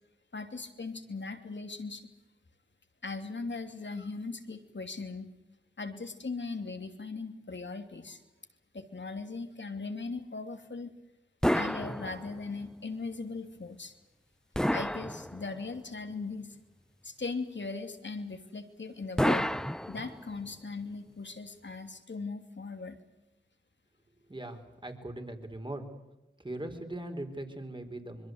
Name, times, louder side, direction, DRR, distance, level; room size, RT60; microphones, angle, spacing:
voice 1, 0.3-2.0 3.0-5.3 5.8-8.2 8.7-10.9 11.5-13.9 14.7-16.6 17.0-19.5 19.9-23.0, left 3 dB, 60° left, 7 dB, 2.9 m, -39 dB
sound 1, 11.4-12.6 14.5-15.8 19.2-20.5, equal, 5° left, 0.8 m, -30 dB
voice 2, 24.3-25.9 26.4-28.3, right 1 dB, 20° right, 6 dB, 4.6 m, -40 dB
25.5 x 22.5 x 8.0 m, 0.96 s
cardioid pair, 40°, 21 cm